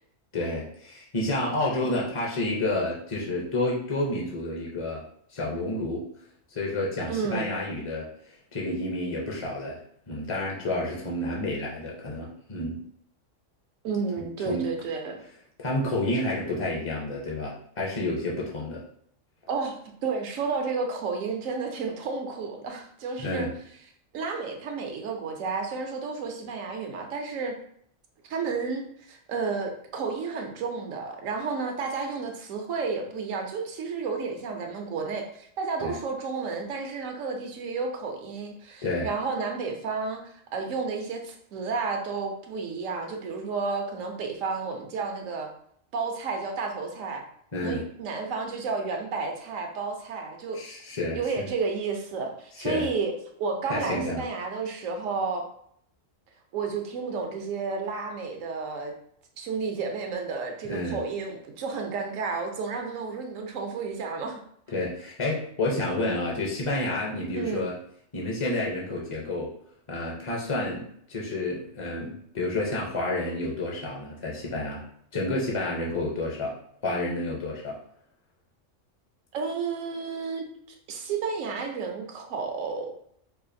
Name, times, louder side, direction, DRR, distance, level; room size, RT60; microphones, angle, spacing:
voice 1, 0.3-5.0 5.3-6.0 6.5-8.1 8.5-9.8 10.1-12.8 14.5-14.7 15.6-18.8 23.2-23.5 35.8-35.9 38.8-39.1 47.5-47.8 50.5-51.2 52.6-52.9 53.7-54.2 60.6-61.0 64.7-67.7 68.1-69.5 69.9-74.8 75.1-76.6 76.8-77.8, left 2 dB, 35° left, -3 dB, 0.5 m, -30 dB
voice 2, 7.1-7.5 13.8-15.2 19.5-19.8 20.0-23.5 24.1-27.5 28.2-45.5 45.9-47.2 47.6-50.6 51.1-53.1 53.4-55.5 56.5-58.9 59.4-64.4 67.3-67.7 79.3-80.4 80.9-82.9, right 4 dB, 85° right, 3 dB, 1.1 m, -31 dB
4.7 x 2.4 x 2.6 m, 0.67 s
omnidirectional pair, 1.3 m